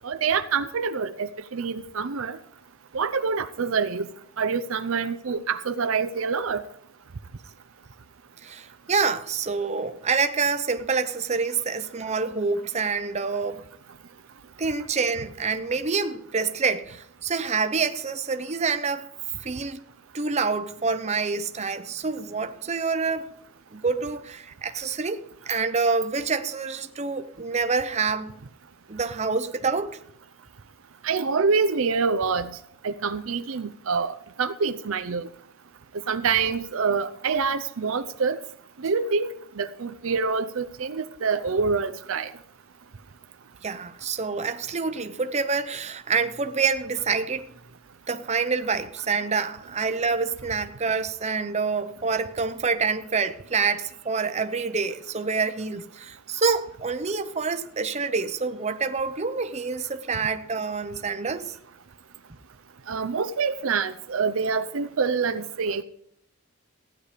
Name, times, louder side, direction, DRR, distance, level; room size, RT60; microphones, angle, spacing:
voice 1, 0.0-2.4 2.9-4.1 4.4-6.6 31.0-32.6 32.8-35.3 36.1-38.4 38.8-39.3 39.6-42.3 62.9-65.8, right 5 dB, 70° right, 0.6 m, -26 dB
voice 2, 8.4-13.6 14.6-19.1 19.4-19.8 20.1-23.3 23.7-25.2 25.5-28.3 28.9-30.0 43.6-47.5 48.1-61.5, right 4 dB, 30° right, 0.8 m, -27 dB
15.5 x 9.8 x 5.0 m
head